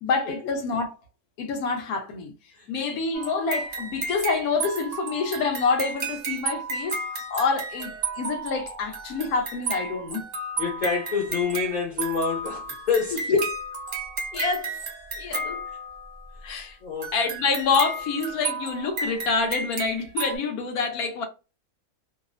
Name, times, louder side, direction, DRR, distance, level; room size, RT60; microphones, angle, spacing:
voice 1, 0.0-0.9 1.4-2.3 2.7-7.0 7.3-10.2 13.3-13.4 14.3-14.8 15.2-15.6 16.4-16.8 17.1-21.3, left 4 dB, 85° left, 1.2 m, -27 dB
sound 1, 3.1-16.3 17.0-20.4, right 3 dB, 50° right, 0.9 m, -33 dB
voice 2, 10.6-13.3 16.8-17.1, left 5 dB, 45° left, 0.6 m, -27 dB
2.9 x 2.0 x 2.4 m
omnidirectional pair, 1.5 m